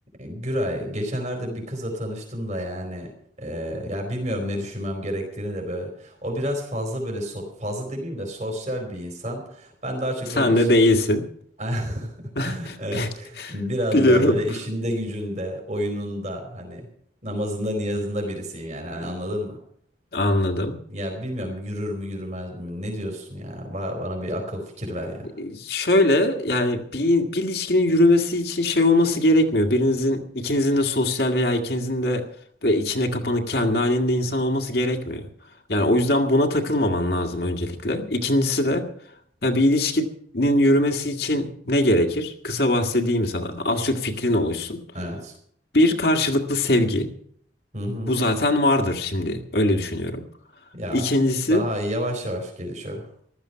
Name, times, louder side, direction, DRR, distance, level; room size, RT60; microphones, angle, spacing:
voice 1, 0.2-3.1 3.4-10.8 11.6-16.9 17.2-19.6 20.9-25.3 44.9-45.4 47.7-48.1 50.7-51.1 51.4-53.1, equal, 40° right, 2 dB, 4.4 m, -30 dB
voice 2, 10.4-11.2 12.4-13.1 13.4-13.5 13.9-14.4 20.1-20.8 25.4-32.2 32.6-35.3 35.7-38.8 39.4-40.1 40.3-44.8 45.7-47.1 48.1-50.2 50.9-51.6, left 1 dB, 55° left, 4 dB, 1.8 m, -21 dB
15.0 x 12.5 x 5.8 m, 0.64 s
head